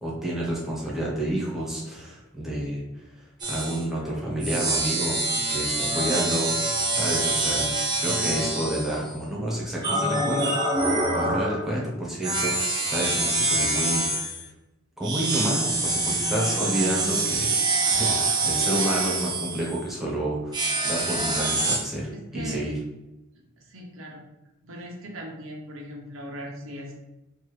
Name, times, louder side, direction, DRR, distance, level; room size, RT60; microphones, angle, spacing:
voice 1, 0.0-2.8 3.5-5.2 5.5-6.5 6.9-7.7 8.0-10.8 11.1-14.3 15.0-17.5 17.9-20.6 20.8-22.7, right 1 dB, ahead, -5 dB, 1.1 m, -29 dB
sound 1, 3.4-3.8 4.4-9.2 9.8-11.7 12.2-14.4 15.0-19.9 20.5-21.8, right 2 dB, 20° right, 0.7 m, -25 dB
voice 2, 4.8-5.4 5.7-6.4 15.3-15.6 22.1-22.6 23.6-24.3 24.6-27.0, equal, 80° right, 0 dB, 0.9 m, -40 dB
4.4 x 2.6 x 3.2 m, 0.95 s
head